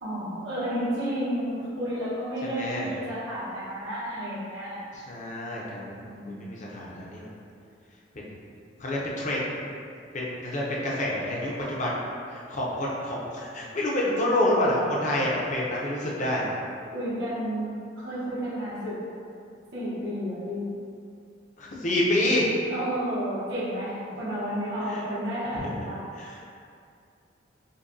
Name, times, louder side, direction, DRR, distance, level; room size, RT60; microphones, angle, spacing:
voice 1, 0.0-5.0 6.1-6.6 16.9-19.0 19.7-20.7 22.7-26.0, equal, 75° right, -11 dB, 1.0 m, -31 dB
voice 2, 2.5-2.9 4.9-7.4 8.1-8.4 8.8-9.6 10.1-16.5 21.6-22.5 24.9-25.0 25.5-25.7 26.1-26.4, left 1 dB, 40° left, -5 dB, 0.6 m, -28 dB
5.2 x 2.2 x 2.6 m, 2.4 s
head